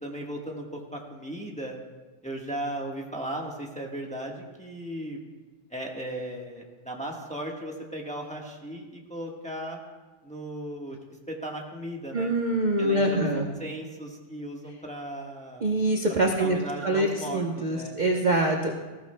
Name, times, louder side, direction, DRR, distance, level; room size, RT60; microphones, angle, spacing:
voice 1, 0.0-1.8 2.2-5.2 5.7-9.8 10.2-11.0 11.3-12.3 12.8-15.7 16.2-18.0, right 1 dB, 5° left, -1 dB, 1.0 m, -36 dB
voice 2, 12.1-13.5 15.6-16.6 16.8-18.7, right 1 dB, 40° right, 0 dB, 0.6 m, -24 dB
19.5 x 15.0 x 2.2 m, 1.3 s
omnidirectional pair, 2.0 m